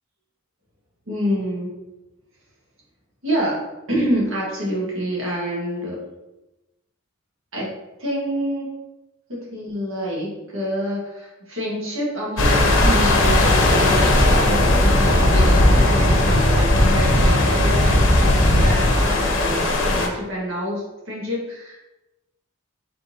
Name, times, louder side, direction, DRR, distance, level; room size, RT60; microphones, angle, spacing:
voice 1, 1.1-1.7 3.2-6.0 7.5-7.7 8.0-8.7 9.3-21.8, equal, 70° right, -4 dB, 1.5 m, -27 dB
sound 1, 12.4-20.1, left 1 dB, 65° left, 0.7 m, -17 dB
4.4 x 3.6 x 2.7 m, 1.0 s
head